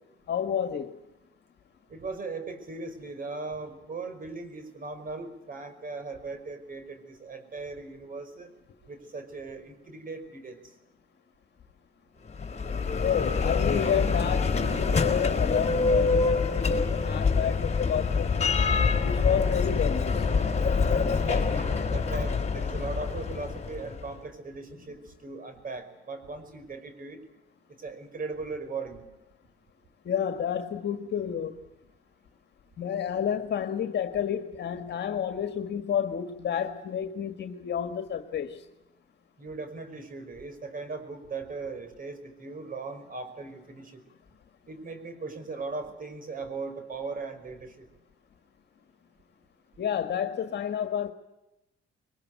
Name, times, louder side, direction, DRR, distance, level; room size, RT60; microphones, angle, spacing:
voice 1, 0.3-0.9 13.0-18.6 19.0-20.2 30.0-31.6 32.8-38.6 49.8-51.1, left 8 dB, 60° left, 1.7 m, -30 dB
voice 2, 1.9-8.5 8.9-10.6 21.1-27.2 27.8-29.1 39.4-44.0 44.7-47.9, right 3 dB, 45° right, 5.3 m, -38 dB
Bell, 12.3-24.1, left 4 dB, 35° left, 4.0 m, -26 dB
22.5 x 21.0 x 9.4 m
cardioid pair, 90°, 20 cm